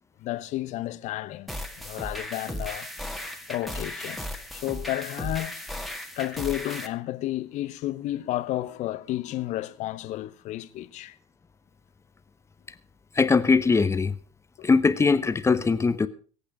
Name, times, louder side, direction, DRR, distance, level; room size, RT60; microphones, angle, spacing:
voice 1, 0.2-2.9 3.2-5.6 6.2-11.2 14.6-14.7, left 15 dB, 45° left, 1.0 m, -32 dB
sound 1, 1.5-6.9, left 1 dB, ahead, 2.0 m, -36 dB
voice 2, 13.1-14.2 14.6-16.1, left 4 dB, 15° left, 1.0 m, -21 dB
22.5 x 8.6 x 4.9 m
figure-of-eight pair, 70°, 17 cm